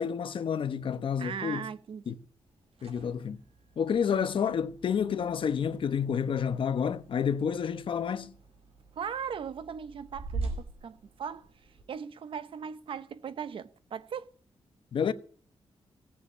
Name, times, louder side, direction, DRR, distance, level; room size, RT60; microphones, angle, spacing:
voice 1, 0.0-1.7 2.1-2.2 2.8-3.4 3.8-8.3 14.9-15.1, left 7 dB, 60° left, 1.0 m, -29 dB
voice 2, 1.2-2.2 9.0-11.5 11.9-14.3, right 7 dB, 60° right, 0.9 m, -38 dB
sound 1, 2.5-11.8, right 3 dB, 75° right, 5.4 m, -44 dB
17.0 x 7.4 x 8.5 m
wide cardioid pair, 165°, 10 cm